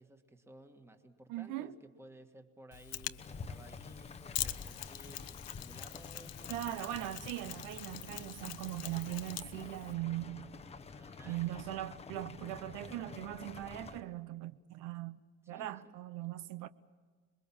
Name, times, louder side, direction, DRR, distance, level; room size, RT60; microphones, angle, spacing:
voice 1, 0.0-6.6 10.8-11.6 15.4-16.0, right 2 dB, 10° right, 1.6 m, -57 dB
voice 2, 1.3-1.7 6.5-10.5 11.3-15.2 15.5-16.7, right 14 dB, 75° right, 0.9 m, -40 dB
Mechanisms, 2.7-9.9, left 13 dB, 50° left, 0.8 m, -44 dB
sound 1, 3.2-14.0, left 5 dB, 20° left, 0.8 m, -49 dB
27.0 x 22.0 x 7.2 m
cardioid pair, 160°, 32 cm